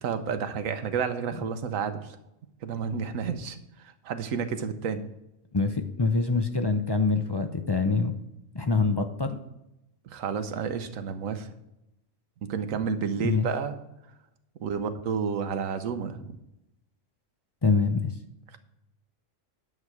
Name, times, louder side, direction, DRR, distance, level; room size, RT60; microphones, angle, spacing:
voice 1, 0.0-2.2 2.6-5.0 10.0-11.5 12.4-13.8 14.6-16.4, right 6 dB, 85° right, 9 dB, 1.2 m, -31 dB
voice 2, 5.5-8.1 8.5-9.4 13.2-13.5 17.6-18.1, left 4 dB, 35° left, 6 dB, 0.4 m, -25 dB
9.7 x 7.7 x 4.8 m, 0.89 s
omnidirectional pair, 1.4 m